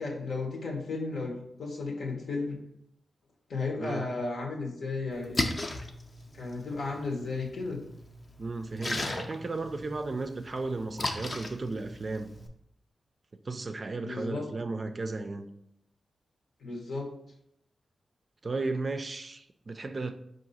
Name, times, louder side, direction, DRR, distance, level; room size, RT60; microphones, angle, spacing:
voice 1, 0.0-2.6 3.5-5.5 6.3-7.8 14.0-14.5 16.6-17.1, left 3 dB, 85° left, 1.0 m, -34 dB
Splash splatter, 5.1-12.5, left 2 dB, 40° left, 0.5 m, -37 dB
voice 2, 8.4-12.3 13.4-15.5 18.4-20.1, right 3 dB, 40° right, 0.3 m, -34 dB
4.7 x 2.6 x 4.0 m
wide cardioid pair, 90°, 0 cm